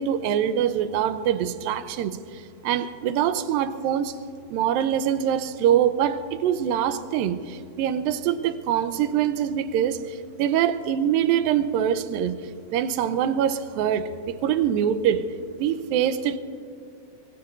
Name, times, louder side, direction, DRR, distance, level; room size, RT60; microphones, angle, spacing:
voice 1, 0.0-2.2 2.6-4.1 4.5-7.4 7.8-10.0 10.4-12.4 12.7-14.1 14.4-15.3 15.6-16.4, right 9 dB, 85° right, 2.4 m, -24 dB
24.5 x 21.5 x 2.6 m
omnidirectional pair, 4.1 m